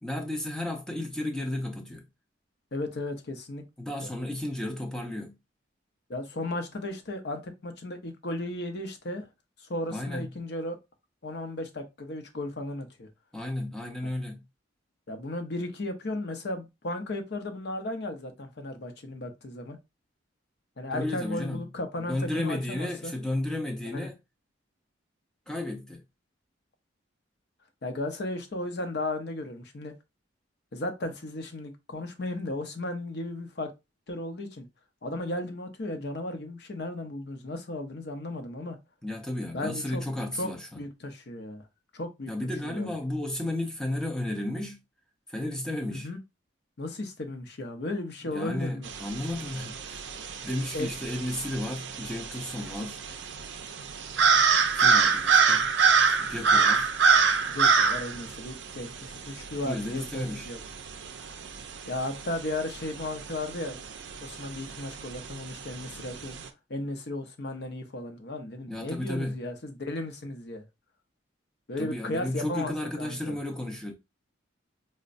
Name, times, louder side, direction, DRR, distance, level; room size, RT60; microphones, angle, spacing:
voice 1, 0.0-2.0 3.8-5.4 9.9-10.3 13.3-14.4 20.9-21.7 22.0-24.2 25.5-26.0 39.0-40.8 42.3-44.8 45.3-46.1 48.2-50.0 50.4-53.0 54.7-55.7 56.1-56.9 59.6-60.5 68.7-69.4 71.8-73.9, left 1 dB, 5° left, 0.6 m, -33 dB
voice 2, 2.7-3.6 4.0-4.1 6.1-9.3 9.6-10.8 11.2-13.1 15.1-19.8 20.8-23.1 23.9-24.1 27.8-29.9 30.7-33.7 34.1-34.7 35.0-38.8 39.5-40.0 40.4-40.5 40.7-41.7 41.9-42.3 42.6-42.9 45.9-46.2 46.8-48.9 50.7-50.9 57.5-60.6 61.9-63.8 64.2-66.3 66.7-70.6 71.7-72.7 73.0-73.3, left 1 dB, 55° left, 0.7 m, -35 dB
sound 1, 48.9-66.5, right 5 dB, 60° right, 0.4 m, -26 dB
5.1 x 2.1 x 2.5 m
head